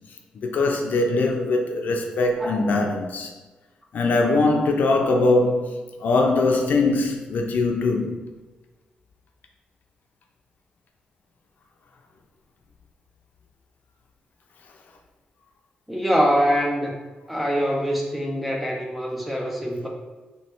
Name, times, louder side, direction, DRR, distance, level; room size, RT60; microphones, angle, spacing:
voice 1, 0.4-3.3 3.9-8.2, left 2 dB, 70° left, 0.6 m, -21 dB
voice 2, 15.9-17.0 17.3-19.9, equal, ahead, 0.6 m, -24 dB
3.2 x 3.2 x 4.3 m
wide cardioid pair, 135°, 3 cm